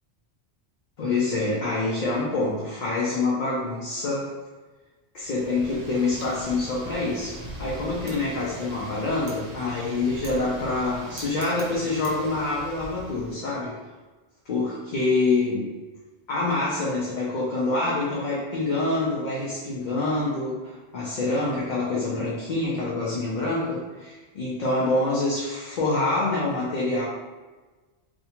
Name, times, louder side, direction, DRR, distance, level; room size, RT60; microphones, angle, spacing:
voice 1, 1.0-4.3 5.1-13.7 14.5-15.7 16.3-27.0, left 2 dB, 55° left, -6 dB, 0.5 m, -26 dB
Wind, 5.2-13.3, right 1 dB, 85° right, 0.9 m, -41 dB
2.6 x 2.2 x 2.8 m, 1.3 s
omnidirectional pair, 1.1 m